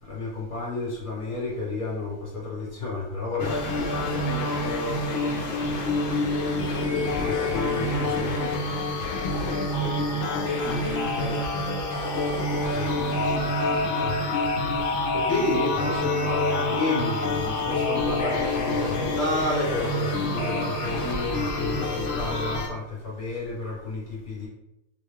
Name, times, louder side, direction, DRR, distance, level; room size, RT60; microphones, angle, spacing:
voice 1, 0.0-3.6 7.1-8.3 12.7-24.5, left 2 dB, 35° left, -5 dB, 1.2 m, -31 dB
voice 2, 3.3-7.2 7.4-11.9 21.7-21.9, left 2 dB, 75° left, 3 dB, 1.1 m, -38 dB
sound 1, 3.4-22.7, left 2 dB, 60° left, 0.8 m, -27 dB
3.7 x 2.1 x 3.7 m, 0.87 s
omnidirectional pair, 1.8 m